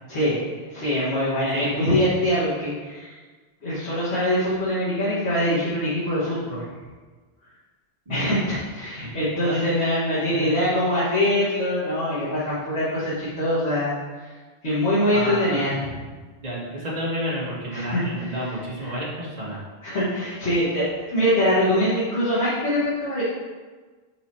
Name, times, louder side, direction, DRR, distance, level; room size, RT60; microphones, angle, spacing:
voice 1, 0.1-0.4 0.7-3.2 3.6-6.6 8.1-14.3 14.6-15.9 17.7-18.3 18.8-19.0 19.8-23.2, equal, 85° left, -12 dB, 2.2 m, -23 dB
voice 2, 15.1-15.6 16.4-19.6, right 1 dB, 40° right, -6 dB, 1.6 m, -30 dB
5.5 x 4.9 x 4.4 m, 1.4 s
omnidirectional pair, 1.1 m